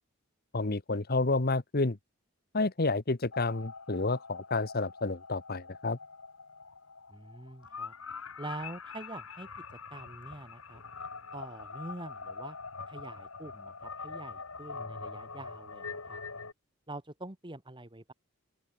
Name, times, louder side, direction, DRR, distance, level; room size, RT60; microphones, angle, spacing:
voice 1, 0.5-2.0 2.5-6.0, left 3 dB, 45° left, 1.2 m, -30 dB
sound 1, 3.3-16.5, left 4 dB, 70° left, 2.8 m, -44 dB
voice 2, 7.1-9.6 9.9-10.8 11.3-12.6 12.9-16.2 16.9-18.1, right 2 dB, 20° right, 1.8 m, -45 dB
open air
head